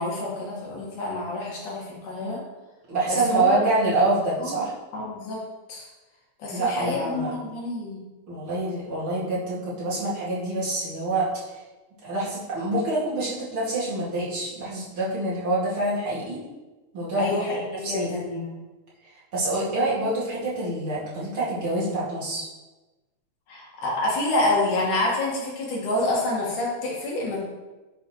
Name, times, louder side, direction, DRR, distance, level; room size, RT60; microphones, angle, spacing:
voice 1, 0.0-2.4 3.1-3.6 4.4-4.5 4.9-5.4 5.7-5.9 6.4-8.0 17.2-18.5 23.5-27.4, left 2 dB, 85° left, -4 dB, 3.5 m, -27 dB
voice 2, 2.9-4.7 6.5-7.3 8.3-11.6 12.0-16.4 16.9-17.4 17.8-18.2 19.3-22.5, right 2 dB, 45° right, -9 dB, 3.0 m, -26 dB
9.9 x 6.2 x 3.2 m, 1.1 s
omnidirectional pair, 3.5 m